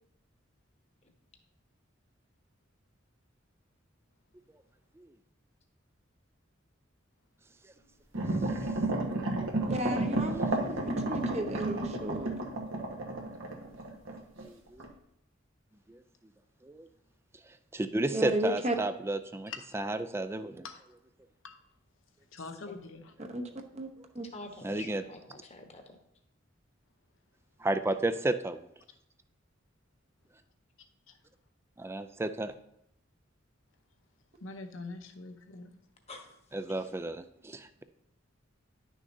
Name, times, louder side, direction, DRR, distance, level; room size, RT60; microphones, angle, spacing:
sound 1, 8.1-14.4 14.8-14.9, right 2 dB, 80° right, 1.2 m, -32 dB
voice 1, 8.3-8.7 14.4-14.8 15.9-16.0 16.6-16.9 17.7-20.7 24.6-25.0 27.6-28.6 31.8-32.5 36.5-37.8, right 2 dB, 15° right, 11 dB, 0.3 m, -33 dB
voice 2, 9.7-12.3 18.1-18.7 23.2-23.4 23.7-23.9 24.1-24.3, right 1 dB, 35° right, 4 dB, 0.8 m, -33 dB
voice 3, 22.3-23.1 34.4-35.7, left 3 dB, 75° left, 7 dB, 0.8 m, -43 dB
voice 4, 24.3-26.0 36.1-36.4 36.7-36.9, left 2 dB, 35° left, 4 dB, 1.0 m, -47 dB
10.5 x 6.2 x 2.7 m, 0.77 s
head